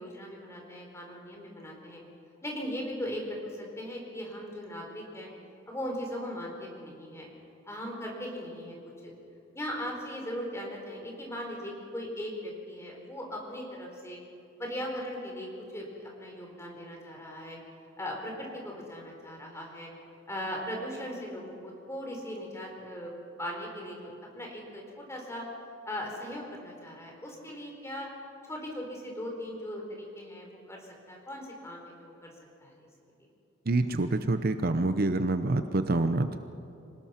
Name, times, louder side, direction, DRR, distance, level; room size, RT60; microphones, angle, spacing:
voice 1, 0.0-2.0 2.4-5.3 5.7-7.3 7.7-8.8 9.0-9.1 9.5-14.2 14.6-17.6 18.0-19.9 20.3-23.1 23.4-25.4 25.8-28.1 28.5-32.3 32.6-32.8, equal, 15° left, 0 dB, 4.3 m, -39 dB
voice 2, 33.7-36.4, right 2 dB, 50° right, 9 dB, 0.8 m, -26 dB
26.0 x 19.0 x 5.9 m, 2.8 s
head